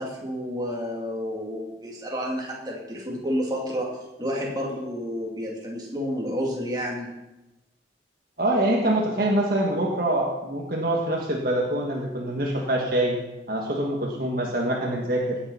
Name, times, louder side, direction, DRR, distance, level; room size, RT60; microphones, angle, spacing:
voice 1, 0.0-3.9 4.2-7.1, equal, 20° right, -3 dB, 2.6 m, -30 dB
voice 2, 8.4-13.2 13.5-15.4, right 1 dB, 55° right, -1 dB, 1.6 m, -25 dB
17.0 x 6.9 x 5.7 m, 0.99 s
head